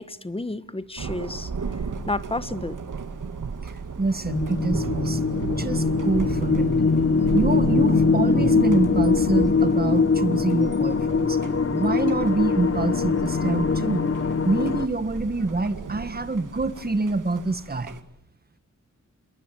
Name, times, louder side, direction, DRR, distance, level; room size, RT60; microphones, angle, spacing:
voice 1, 0.0-1.5 2.1-2.8, left 2 dB, 20° left, 13 dB, 1.3 m, -31 dB
Thunder, 1.0-18.0, right 5 dB, 75° right, 2.2 m, -35 dB
voice 2, 3.6-6.7 7.3-11.4 11.7-14.1 14.4-18.0, right 3 dB, 30° right, 11 dB, 1.7 m, -26 dB
sound 1, 4.3-14.9, left 4 dB, 45° left, 1.5 m, -22 dB
28.0 x 22.0 x 9.2 m, 0.76 s
wide cardioid pair, 115°, 31 cm